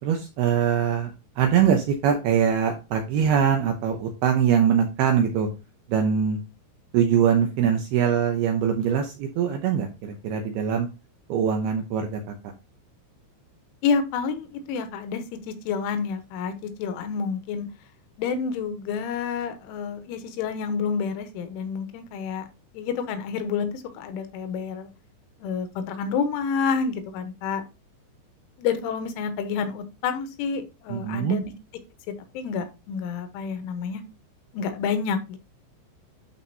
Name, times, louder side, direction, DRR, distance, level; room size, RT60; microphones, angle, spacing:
voice 1, 0.0-5.5 5.9-6.4 6.9-10.9 11.3-12.2 30.9-31.4, right 8 dB, 75° right, 4 dB, 2.3 m, -23 dB
voice 2, 13.8-17.7 18.2-22.5 22.8-24.9 25.4-27.6 28.6-31.5 32.4-34.0 34.5-35.4, left 6 dB, 85° left, 9 dB, 3.5 m, -29 dB
12.0 x 4.4 x 2.7 m, 0.28 s
omnidirectional pair, 5.5 m